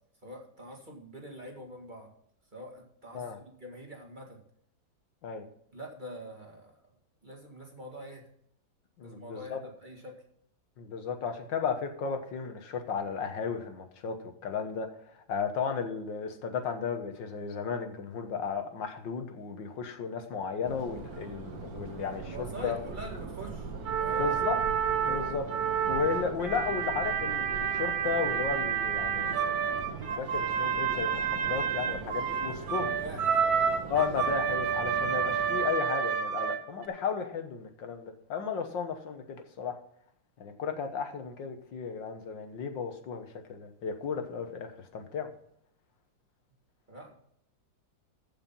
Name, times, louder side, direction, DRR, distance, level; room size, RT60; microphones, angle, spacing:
voice 1, 0.2-2.1 2.5-4.4 5.7-6.7 7.2-8.2 9.0-10.2 22.3-24.4 25.1-25.3 33.0-33.7 46.9-47.1, equal, 25° right, 1 dB, 2.0 m, -44 dB
voice 2, 9.0-9.6 10.8-22.8 24.1-24.6 25.1-25.5 25.9-29.5 30.2-33.0 33.9-39.8 40.4-45.3, left 6 dB, 70° left, 7 dB, 1.9 m, -34 dB
Subway metro underground, 20.6-35.7, right 4 dB, 55° right, 1.7 m, -41 dB
sound 1, 23.9-36.9, right 7 dB, 90° right, 2.0 m, -29 dB
14.5 x 5.8 x 5.4 m, 0.69 s
omnidirectional pair, 2.1 m